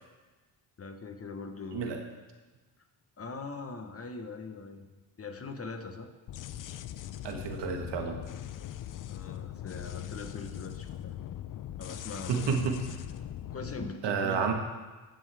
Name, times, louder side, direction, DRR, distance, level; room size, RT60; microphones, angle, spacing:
voice 1, 0.8-2.1 3.2-4.9 5.2-6.1 9.1-11.2 11.8-12.7 13.5-14.5, left 4 dB, 30° left, 6 dB, 1.1 m, -41 dB
sound 1, 6.3-13.9, left 11 dB, 50° left, 0.5 m, -41 dB
voice 2, 7.2-8.2 12.3-12.8 14.0-14.5, right 6 dB, 70° right, 4 dB, 1.4 m, -30 dB
15.0 x 7.6 x 3.4 m, 1.2 s
cardioid pair, 80°, 43 cm